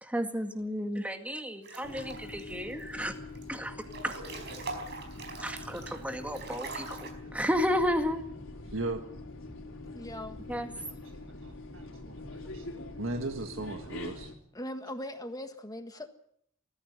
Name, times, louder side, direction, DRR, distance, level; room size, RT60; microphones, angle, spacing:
voice 1, 0.0-3.1 3.5-3.8 4.0-4.2 5.4-8.2 10.5-10.7, equal, 5° right, 6 dB, 2.0 m, -32 dB
Breathing / Bathtub (filling or washing) / Splash splatter, 1.6-2.4 2.8-3.4 3.8-7.1, right 3 dB, 55° right, 4.6 m, -42 dB
sound 1, 1.8-14.3, left 2 dB, 80° left, 3.8 m, -44 dB
voice 2, 8.7-9.0 10.8-11.0 11.4-12.7 13.0-14.3, right 2 dB, 75° right, 5 dB, 1.7 m, -37 dB
voice 3, 9.9-10.4 14.5-16.1, left 1 dB, 20° left, 7 dB, 1.6 m, -40 dB
20.0 x 15.0 x 9.7 m, 0.69 s
head